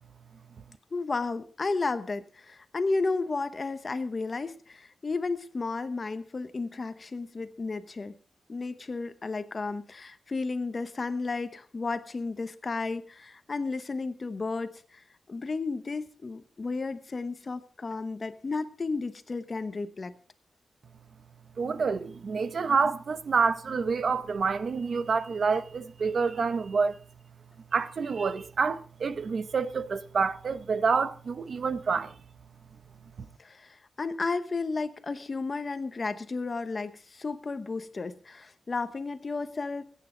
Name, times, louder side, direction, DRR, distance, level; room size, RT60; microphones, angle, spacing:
voice 1, 0.9-8.1 8.5-20.1 33.4-39.8, left 3 dB, 35° left, 0.9 m, -33 dB
voice 2, 21.6-27.0 27.7-32.1, right 5 dB, 50° right, 0.7 m, -28 dB
21.0 x 9.2 x 3.8 m
wide cardioid pair, 160°, 0 cm